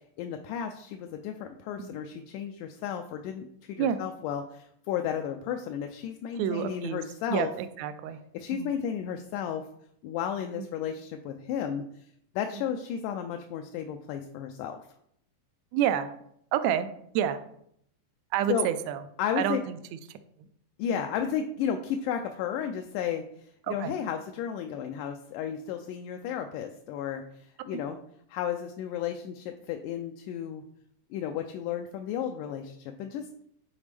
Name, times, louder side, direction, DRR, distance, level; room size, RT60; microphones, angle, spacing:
voice 1, 0.2-7.5 8.3-9.6 10.0-11.9 12.4-14.8 18.5-18.7 19.2-19.6 20.8-23.2 23.7-28.0 28.3-30.6 31.1-33.4, left 8 dB, 80° left, 5 dB, 2.0 m, -33 dB
voice 2, 6.3-7.0 7.3-8.2 8.5-8.7 10.6-10.7 12.5-12.6 15.7-16.1 16.5-16.9 17.1-17.4 18.3-19.0 19.4-20.0 20.9-21.0 23.7-23.9 27.7-27.8, right 10 dB, 85° right, 10 dB, 1.6 m, -29 dB
8.7 x 4.0 x 3.3 m, 0.70 s
omnidirectional pair, 3.8 m